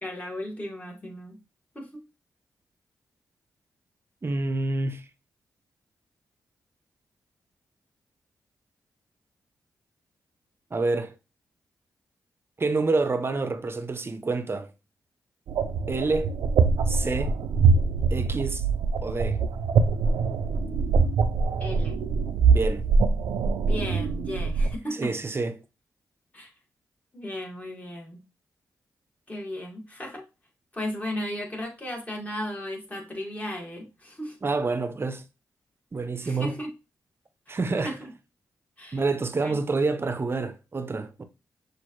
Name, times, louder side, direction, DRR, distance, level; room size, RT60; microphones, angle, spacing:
voice 1, 0.0-1.4 1.8-2.0 21.6-22.0 23.7-25.2 26.3-26.5 27.1-28.2 29.3-30.2 30.7-34.4 36.2-36.7 37.5-37.6 37.8-38.1 38.8-39.0 39.4-39.6, left 1 dB, 20° left, 1.9 m, -35 dB
voice 2, 4.2-5.0 10.7-11.1 12.6-14.7 15.9-16.3 16.9-17.4 18.1-18.6 19.0-19.4 22.5-22.9 25.0-25.6 34.4-35.2 35.9-36.5 37.5-37.9 38.9-41.2, right 3 dB, 35° right, 0.7 m, -27 dB
sound 1, 15.5-24.7, right 4 dB, 85° right, 0.5 m, -23 dB
6.2 x 2.6 x 3.1 m
cardioid pair, 60°, 7 cm